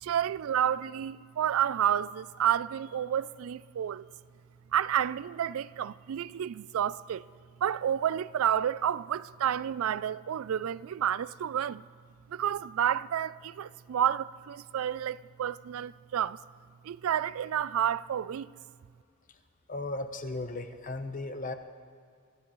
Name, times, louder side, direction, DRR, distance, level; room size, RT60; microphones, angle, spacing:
voice 1, 0.0-4.1 4.7-7.2 7.6-11.8 12.3-16.4 16.8-18.5, right 9 dB, 75° right, 0.3 m, -30 dB
voice 2, 19.7-21.5, left 2 dB, 40° left, 0.9 m, -36 dB
26.0 x 15.5 x 3.1 m
head